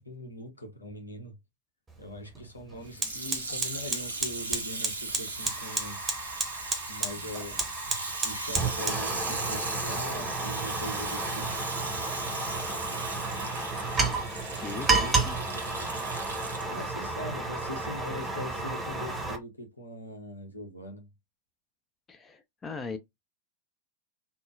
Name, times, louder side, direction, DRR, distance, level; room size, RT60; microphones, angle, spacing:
voice 1, 0.0-1.4 2.0-6.0 6.9-7.6 8.2-11.6 16.7-21.1, left 1 dB, 80° left, 0.9 m, -41 dB
Fire, 1.9-2.0 2.4-19.4, right 3 dB, 15° right, 0.8 m, -32 dB
Water tap faucet / Sink (filling or washing), 2.9-16.9 17.6-17.7, right 3 dB, 75° right, 0.8 m, -37 dB
voice 2, 14.6-15.4 22.1-23.0, left 4 dB, 20° left, 0.4 m, -39 dB
3.5 x 2.0 x 2.4 m
figure-of-eight pair, 90°, 0 cm